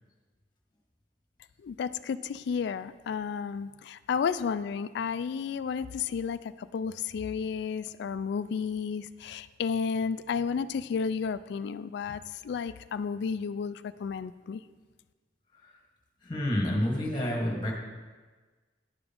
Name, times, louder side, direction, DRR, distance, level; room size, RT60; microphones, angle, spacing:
voice 1, 1.6-14.6, left 6 dB, 65° left, 14 dB, 0.3 m, -32 dB
voice 2, 16.3-17.7, left 1 dB, 25° left, 0 dB, 1.4 m, -28 dB
10.5 x 4.9 x 5.3 m, 1.4 s
head